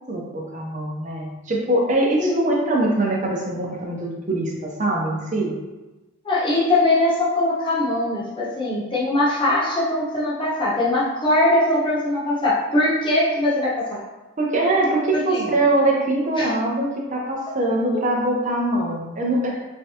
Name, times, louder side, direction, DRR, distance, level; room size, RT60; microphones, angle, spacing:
voice 1, 0.1-5.5 14.4-19.5, right 1 dB, 35° right, -1 dB, 0.6 m, -22 dB
voice 2, 2.2-2.6 6.2-14.0 15.1-15.5 16.4-16.5 17.9-18.0, left 1 dB, 25° left, -8 dB, 1.0 m, -21 dB
3.6 x 3.3 x 2.8 m, 1.1 s
head